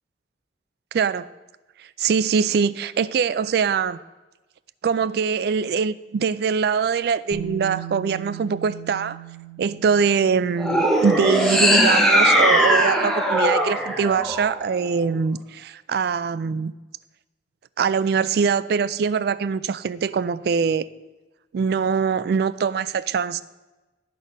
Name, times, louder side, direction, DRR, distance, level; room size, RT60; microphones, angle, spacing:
voice 1, 0.9-1.3 2.0-4.0 4.8-9.2 9.6-16.7 17.8-20.9 21.5-23.4, right 6 dB, 60° right, 16 dB, 0.3 m, -23 dB
Bass guitar, 7.3-11.2 12.4-12.5, right 10 dB, 20° right, 1.6 m, -38 dB
sound 1, 10.6-14.9, equal, ahead, 0.8 m, -19 dB
11.5 x 4.2 x 5.2 m, 1.1 s
head